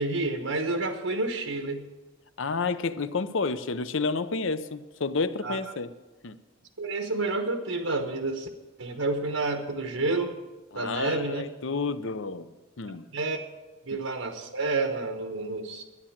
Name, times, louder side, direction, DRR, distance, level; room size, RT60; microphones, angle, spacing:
voice 1, 0.0-1.8 5.4-5.6 6.8-8.5 8.8-10.3 10.7-11.4 13.1-13.4 13.9-15.8, right 3 dB, 80° right, 5 dB, 1.2 m, -29 dB
voice 2, 2.4-5.9 6.2-6.4 10.7-12.5 12.8-13.1, left 4 dB, 65° left, 13 dB, 0.7 m, -30 dB
12.0 x 9.9 x 7.3 m, 1.2 s
head